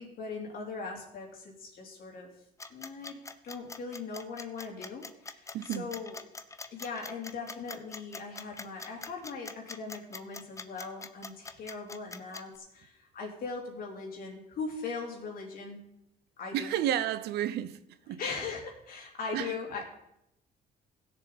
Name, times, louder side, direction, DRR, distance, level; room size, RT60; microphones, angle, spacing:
voice 1, 0.0-2.3 2.7-6.2 6.7-15.9 16.4-16.8 18.2-19.8, left 4 dB, 60° left, 3.1 m, -40 dB
sound 1, 2.6-12.6, left 4 dB, 20° left, 0.6 m, -43 dB
voice 2, 5.5-5.9 16.5-17.8 18.1-18.2 19.3-19.5, right 11 dB, 75° right, 0.7 m, -31 dB
16.0 x 7.1 x 4.1 m
cardioid pair, 110°, 17 cm